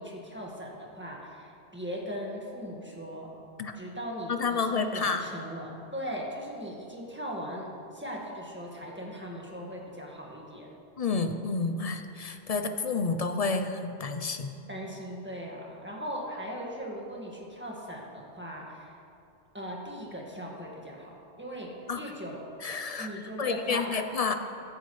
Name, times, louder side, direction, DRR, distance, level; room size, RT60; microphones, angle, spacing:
voice 1, 0.0-3.3 3.7-10.7 14.7-18.9 19.5-22.4 23.0-24.0, equal, 10° right, -2 dB, 1.7 m, -39 dB
voice 2, 4.3-5.3 11.0-14.5 21.9-22.0 22.6-24.3, left 4 dB, 45° left, 7 dB, 0.5 m, -30 dB
15.5 x 11.0 x 3.2 m, 2.6 s
omnidirectional pair, 1.1 m